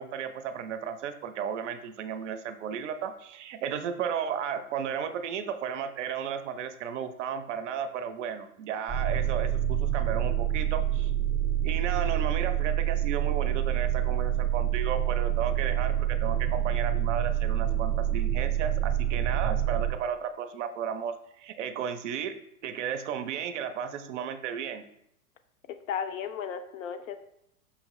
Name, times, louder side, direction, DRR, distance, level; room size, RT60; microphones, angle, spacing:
voice 1, 0.0-11.1 11.6-22.3 22.6-24.8, right 7 dB, 55° right, 10 dB, 0.5 m, -34 dB
sound 1, 8.9-19.9, right 11 dB, 5° right, 0.4 m, -27 dB
voice 2, 25.7-27.3, left 7 dB, 60° left, 9 dB, 0.6 m, -35 dB
5.2 x 2.8 x 3.0 m, 0.75 s
hypercardioid pair, 110°, 44 cm